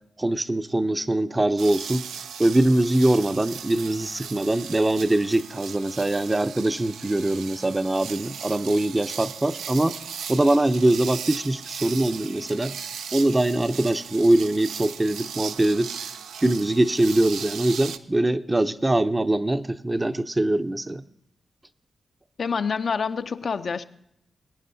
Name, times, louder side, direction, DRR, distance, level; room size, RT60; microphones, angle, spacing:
voice 1, 0.2-2.0 2.4-9.9 10.3-12.8 13.1-15.9 16.4-21.0, right 1 dB, 25° right, 10 dB, 0.6 m, -22 dB
sound 1, 1.6-18.0, right 7 dB, 85° right, 0.4 m, -37 dB
voice 2, 22.4-23.8, left 5 dB, 65° left, 9 dB, 0.4 m, -27 dB
20.5 x 9.4 x 2.7 m, 0.79 s
supercardioid pair, 50°, 0 cm